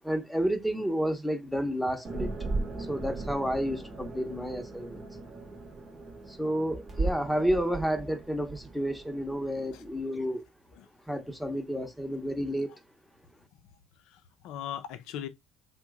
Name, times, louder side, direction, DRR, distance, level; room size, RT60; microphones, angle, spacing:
voice 1, 0.0-2.3 2.8-5.0 6.3-10.4 11.1-12.8, equal, ahead, 0.7 m, -30 dB
sound 1, 2.0-10.0, right 3 dB, 35° right, 0.8 m, -37 dB
voice 2, 14.1-15.3, left 10 dB, 70° left, 0.5 m, -39 dB
2.9 x 2.1 x 3.4 m
supercardioid pair, 80°, 0 cm